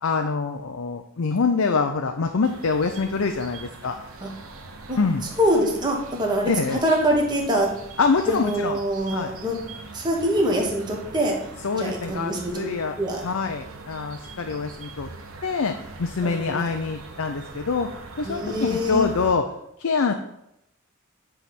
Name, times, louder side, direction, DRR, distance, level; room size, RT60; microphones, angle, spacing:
voice 1, 0.0-4.0 5.0-5.2 6.5-6.8 8.0-8.8 9.1-9.3 11.6-12.9 13.2-15.1 15.4-17.9 18.2-19.5 19.8-20.1, left 4 dB, 80° left, 6 dB, 0.6 m, -25 dB
sound 1, 2.4-19.3, right 3 dB, 80° right, 1.1 m, -42 dB
voice 2, 5.4-6.5 6.8-7.7 8.3-9.6 9.9-11.4 11.8-12.7 13.0-13.2 16.2-16.6 18.2-19.1, equal, 20° right, -1 dB, 1.6 m, -24 dB
10.0 x 3.5 x 6.0 m, 0.81 s
head